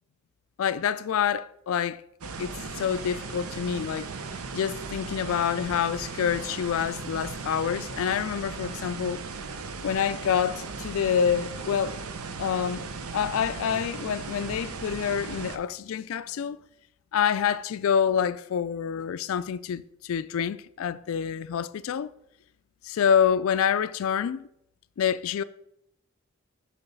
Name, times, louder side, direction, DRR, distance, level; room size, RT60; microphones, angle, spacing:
voice 1, 0.6-2.0 2.4-4.1 4.5-9.2 9.8-12.0 12.4-12.9 13.1-16.6 17.1-22.1 22.8-24.5 25.0-25.4, left 8 dB, 70° left, 0.3 m, -27 dB
sound 1, 2.2-15.6, right 4 dB, 80° right, 0.7 m, -37 dB
6.9 x 4.6 x 5.4 m
head